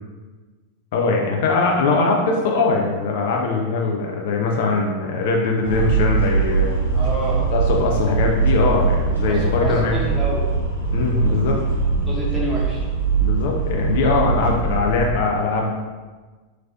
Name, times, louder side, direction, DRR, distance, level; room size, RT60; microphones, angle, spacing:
voice 1, 0.9-6.7 7.5-10.0 10.9-11.6 13.2-15.7, left 3 dB, 50° left, 0 dB, 0.4 m, -21 dB
sound 1, 5.6-15.1, right 4 dB, 85° left, 0.8 m, -21 dB
voice 2, 6.9-7.5 9.3-10.5 12.1-12.8, right 1 dB, 10° right, -6 dB, 0.9 m, -28 dB
2.9 x 2.8 x 2.5 m, 1.3 s
figure-of-eight pair, 90°, 0 cm